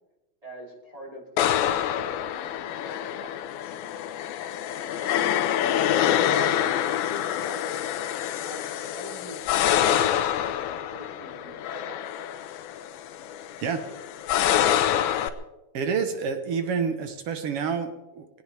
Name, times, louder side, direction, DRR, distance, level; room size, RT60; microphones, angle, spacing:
voice 1, 0.4-3.3 3.7-4.3 5.1-5.6 5.8-6.5 6.9-7.7 8.4-9.4 9.7-10.3 10.9-12.1 13.8-13.9 14.4-15.3, right 1 dB, 10° right, -2 dB, 3.0 m, -44 dB
sound 1, 1.4-15.3, left 10 dB, 90° left, 2.7 m, -26 dB
voice 2, 15.7-18.4, right 6 dB, 65° right, 7 dB, 1.4 m, -28 dB
21.5 x 17.5 x 3.5 m, 1.0 s
omnidirectional pair, 4.2 m